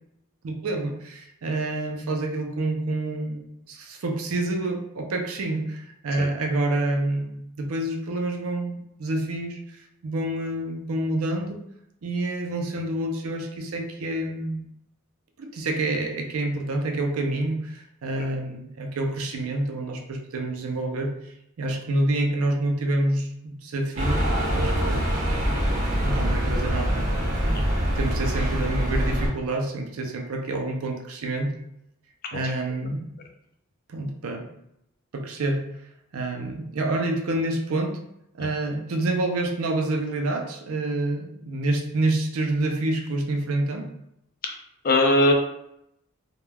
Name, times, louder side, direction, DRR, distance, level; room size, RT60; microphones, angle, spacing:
voice 1, 0.4-7.3 7.6-11.6 12.0-14.7 15.4-21.1 21.6-25.1 26.0-27.7 28.0-31.5 32.3-33.1 33.9-34.5 35.1-35.6 36.1-38.0 38.3-43.9, right 2 dB, 80° right, 3 dB, 0.5 m, -28 dB
sound 1, 24.0-29.3, equal, 35° right, 0.9 m, -24 dB
voice 2, 44.8-45.3, left 1 dB, 40° left, 3 dB, 0.4 m, -20 dB
2.2 x 2.2 x 3.2 m, 0.77 s
head